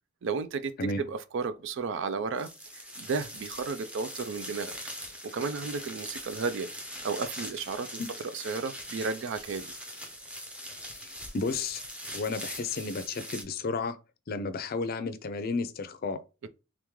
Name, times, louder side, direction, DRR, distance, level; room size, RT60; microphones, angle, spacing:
voice 1, 0.2-4.8 5.2-6.7 7.0-9.7 16.4-16.5, right 4 dB, 65° right, 0.4 m, -33 dB
sound 1, 2.4-13.4, equal, 5° right, 0.7 m, -42 dB
voice 2, 10.9-11.8 12.1-14.0 14.3-16.2, left 3 dB, 50° left, 0.5 m, -32 dB
3.6 x 3.6 x 3.1 m
head